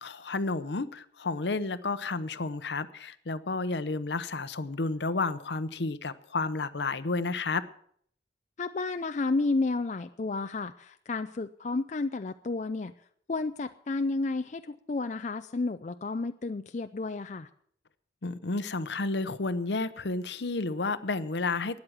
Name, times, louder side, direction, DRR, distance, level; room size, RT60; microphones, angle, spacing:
voice 1, 0.0-7.6 18.2-21.8, left 3 dB, 70° left, 14 dB, 0.8 m, -31 dB
voice 2, 8.6-12.9 13.3-17.5, left 3 dB, 40° left, 9 dB, 0.4 m, -31 dB
13.0 x 9.5 x 7.3 m, 0.64 s
head